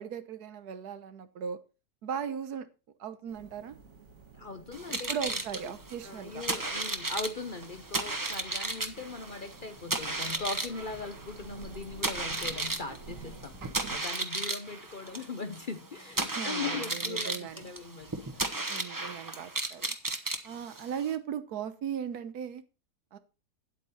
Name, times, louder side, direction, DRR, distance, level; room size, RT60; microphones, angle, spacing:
voice 1, 0.0-1.6 2.0-2.7 3.0-3.8 5.1-6.4 16.4-17.6 18.7-19.9 20.4-22.6 23.1-23.2, right 8 dB, 80° right, 1.4 m, -37 dB
sound 1, 3.3-14.0, right 5 dB, 60° right, 1.6 m, -50 dB
voice 2, 4.3-5.4 6.0-18.4, left 4 dB, 45° left, 0.7 m, -40 dB
sound 2, 4.7-21.2, right 2 dB, 15° right, 0.7 m, -35 dB
9.3 x 8.2 x 4.2 m
omnidirectional pair, 1.6 m